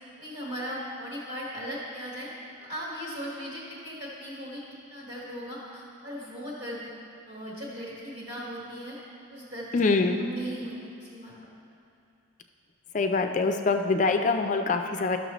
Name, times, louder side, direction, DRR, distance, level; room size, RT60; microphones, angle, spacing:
voice 1, 0.2-2.3 2.6-4.6 4.9-6.9 7.3-9.0 9.3-9.8 10.2-10.7 11.0-11.3, equal, 35° right, -6 dB, 1.3 m, -38 dB
voice 2, 9.7-10.2 12.9-15.2, left 3 dB, 35° left, 6 dB, 0.4 m, -24 dB
12.0 x 6.4 x 3.0 m, 2.5 s
head